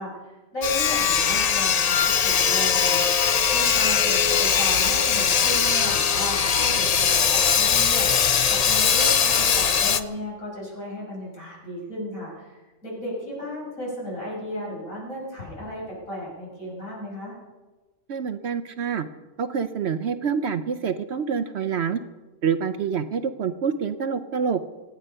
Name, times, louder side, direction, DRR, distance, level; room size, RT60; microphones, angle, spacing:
voice 1, 0.0-8.1 8.5-17.4, equal, 75° left, -5 dB, 6.9 m, -34 dB
Sawing, 0.6-10.0, left 7 dB, 55° left, 0.4 m, -21 dB
voice 2, 18.1-19.1 19.4-22.0 22.4-24.6, right 6 dB, 60° right, 11 dB, 0.8 m, -26 dB
25.0 x 9.2 x 5.5 m, 1.2 s
omnidirectional pair, 1.4 m